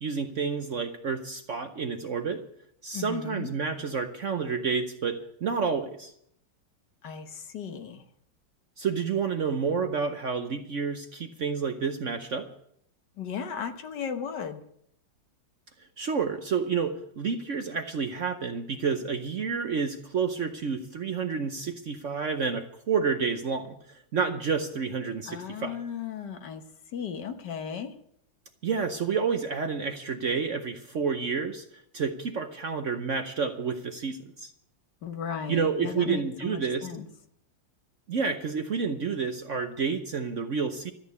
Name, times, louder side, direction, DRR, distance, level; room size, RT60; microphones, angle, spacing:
voice 1, 0.0-2.4 2.8-6.1 8.8-12.5 16.0-25.8 28.6-31.6 31.9-34.5 35.5-36.9 38.1-40.9, right 5 dB, 55° right, 7 dB, 0.9 m, -29 dB
voice 2, 2.9-3.5 7.0-8.0 13.2-14.6 25.3-26.6 26.9-27.9 35.0-37.0, left 7 dB, 65° left, 8 dB, 1.7 m, -36 dB
13.5 x 8.8 x 8.2 m, 0.70 s
omnidirectional pair, 2.0 m